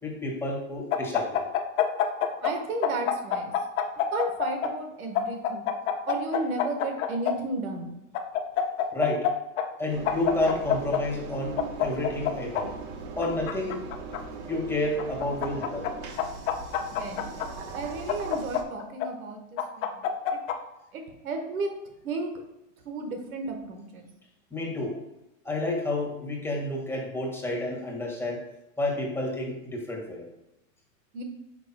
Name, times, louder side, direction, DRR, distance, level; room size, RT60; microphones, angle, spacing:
voice 1, 0.0-1.4 8.9-9.3 9.8-12.7 13.2-13.8 14.5-15.9 24.5-24.9 25.4-28.4 28.8-30.2, left 1 dB, 5° left, -2 dB, 1.7 m, -30 dB
sound 1, 0.9-2.5 2.8-4.7 5.2-7.3 8.1-9.3 9.6-9.7 10.1-11.0 11.6-12.6 13.2-14.2 15.0-15.9 16.2-17.5 18.1-19.1 19.6-20.6, left 9 dB, 70° left, 1.0 m, -26 dB
voice 2, 2.4-3.5 4.1-5.7 6.1-7.9 16.9-17.4 17.7-20.1 20.9-21.7 22.0-22.3 22.8-24.1 31.1-31.2, right 3 dB, 85° right, 4 dB, 1.5 m, -33 dB
Engine, 9.9-18.6, right 4 dB, 55° right, 1.2 m, -40 dB
7.9 x 6.1 x 2.2 m, 0.90 s
supercardioid pair, 125°, 41 cm